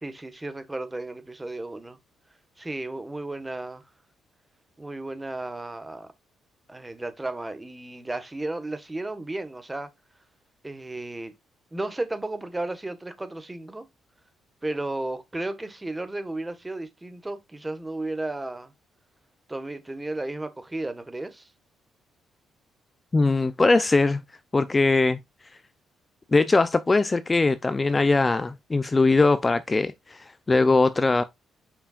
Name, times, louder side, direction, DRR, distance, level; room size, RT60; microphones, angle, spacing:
voice 1, 0.0-2.0 2.6-3.8 4.8-6.1 6.7-9.9 10.6-11.3 11.7-13.8 14.6-18.7 19.5-21.5, right 2 dB, 15° right, 1.4 m, -34 dB
voice 2, 23.1-24.2 24.5-25.2 26.3-31.2, left 3 dB, 25° left, 0.5 m, -21 dB
7.1 x 5.5 x 2.4 m
cardioid pair, 90°, 0 cm